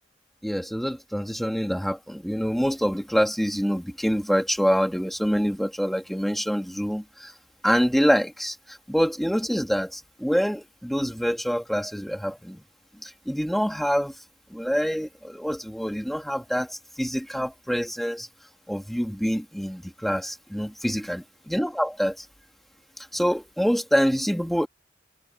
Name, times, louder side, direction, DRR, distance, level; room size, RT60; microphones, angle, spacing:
voice 1, 0.4-7.3 7.6-12.6 13.0-14.1 14.5-18.3 18.7-22.3 23.1-24.7, equal, ahead, 2.0 m, -26 dB
head